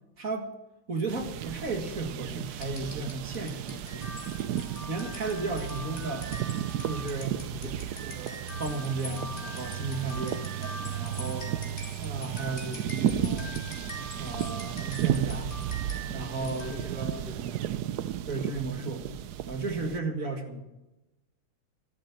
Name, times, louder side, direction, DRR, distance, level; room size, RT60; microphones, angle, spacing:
voice 1, 0.2-0.5 0.9-4.2 4.9-6.3 6.9-7.4 8.0-10.4 10.8-11.5 12.0-13.5 14.2-15.5 16.0-17.2 18.3-19.0 19.5-20.6, right 3 dB, 40° right, 4 dB, 2.1 m, -34 dB
sound 1, 1.1-20.0, right 11 dB, 80° right, 0.9 m, -34 dB
sound 2, 2.6-17.0, left 1 dB, 20° left, 3.4 m, -43 dB
voice 2, 7.3-8.0 16.3-16.9 17.2-17.7 18.0-18.2, left 5 dB, 45° left, 5 dB, 2.0 m, -45 dB
13.5 x 11.5 x 7.4 m, 1.0 s
omnidirectional pair, 2.4 m